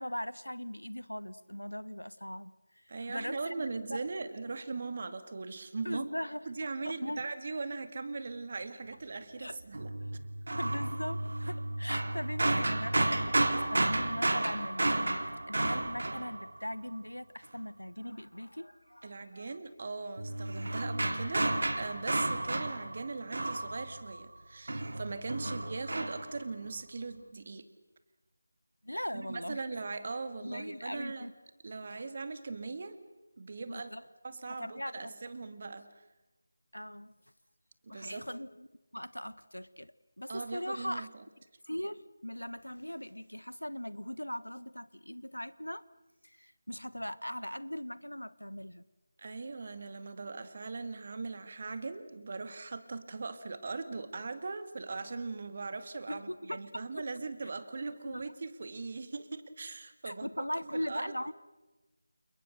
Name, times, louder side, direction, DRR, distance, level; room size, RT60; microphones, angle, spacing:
voice 1, 0.0-4.0 5.8-6.5 6.8-7.2 9.4-9.6 10.5-19.6 25.4-25.5 28.8-29.6 30.4-31.3 31.9-32.1 33.7-34.0 34.6-35.1 35.4-35.5 36.7-37.1 37.9-38.7 38.9-41.1 41.6-45.8 46.2-48.8 56.1-57.1 57.9-58.3 60.0-61.3, equal, 85° left, 16 dB, 1.3 m, -40 dB
voice 2, 2.9-6.1 6.5-9.9 10.7-10.8 19.0-27.7 29.1-31.3 31.6-33.0 33.4-33.9 34.2-36.0 37.8-38.3 40.3-41.1 49.2-60.3 60.7-61.2, right 3 dB, 35° right, 10 dB, 2.3 m, -40 dB
sound 1, 9.7-16.9 20.2-24.4 24.7-26.4, right 2 dB, 50° right, 2.5 m, -32 dB
29.5 x 28.5 x 6.7 m, 1.1 s
figure-of-eight pair, 165°, 0 cm